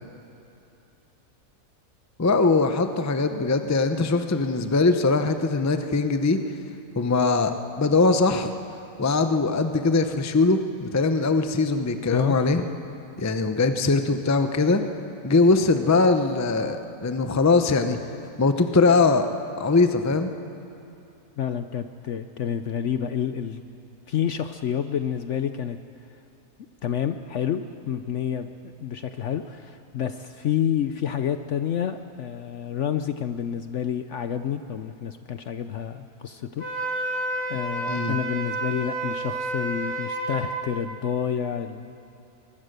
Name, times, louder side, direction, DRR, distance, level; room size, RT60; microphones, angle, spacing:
voice 1, 2.2-6.4 7.0-8.5 9.0-12.6 13.2-14.8 15.2-18.0 18.4-19.3 19.6-20.3 37.9-38.1, left 3 dB, 20° left, 8 dB, 0.5 m, -21 dB
voice 2, 21.4-23.6 24.1-25.8 26.8-28.5 28.8-36.6 37.5-42.0, left 9 dB, 60° left, 9 dB, 0.8 m, -29 dB
Wind instrument woodwind instrument, 36.6-40.5, right 2 dB, 40° left, 5.5 m, -30 dB
23.0 x 20.5 x 6.7 m, 2.8 s
omnidirectional pair, 1.7 m